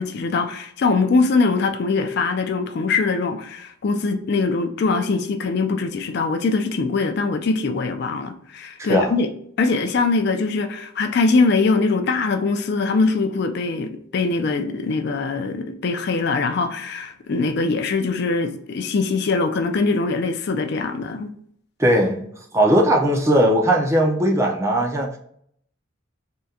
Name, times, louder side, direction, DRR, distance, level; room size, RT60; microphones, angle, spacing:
voice 1, 0.0-9.3 9.6-21.3, left 4 dB, 50° left, 0.4 m, -22 dB
voice 2, 8.8-9.1 21.8-22.3 22.5-25.1, right 1 dB, 15° right, 0.4 m, -18 dB
3.5 x 2.1 x 2.7 m
head